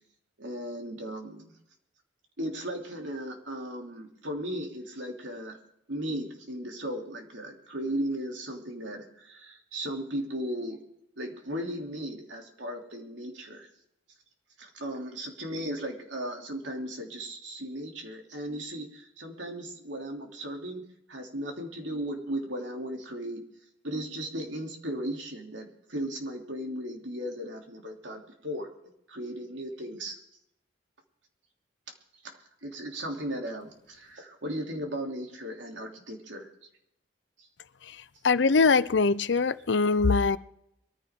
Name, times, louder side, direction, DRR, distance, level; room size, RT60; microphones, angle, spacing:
voice 1, 0.4-1.5 2.4-5.6 5.9-10.8 11.2-13.7 14.6-20.8 21.1-23.4 23.8-28.7 29.1-30.2 32.2-36.5 37.4-37.5, right 1 dB, 90° right, 1 dB, 3.2 m, -36 dB
voice 2, 38.2-40.4, left 4 dB, 80° left, 16 dB, 0.6 m, -22 dB
22.5 x 14.5 x 3.8 m, 0.75 s
head